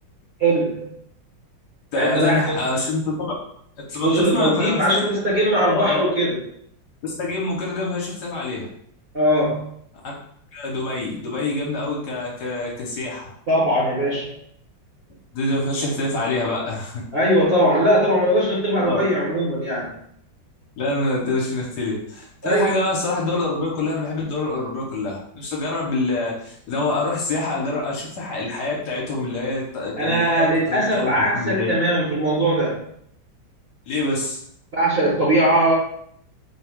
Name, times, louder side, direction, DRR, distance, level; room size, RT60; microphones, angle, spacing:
voice 1, 0.4-0.9 1.9-2.6 4.0-6.4 9.1-9.6 13.5-14.3 17.1-19.9 22.4-22.7 30.0-32.8 34.7-35.7, right 1 dB, 40° right, -5 dB, 1.0 m, -20 dB
voice 2, 1.9-3.4 3.8-5.0 5.6-6.1 7.0-8.7 10.0-10.1 10.5-13.3 15.3-17.0 18.8-19.0 20.8-31.7 33.9-34.4, left 2 dB, 65° left, -2 dB, 1.4 m, -26 dB
4.4 x 2.3 x 3.5 m, 0.69 s
omnidirectional pair, 2.0 m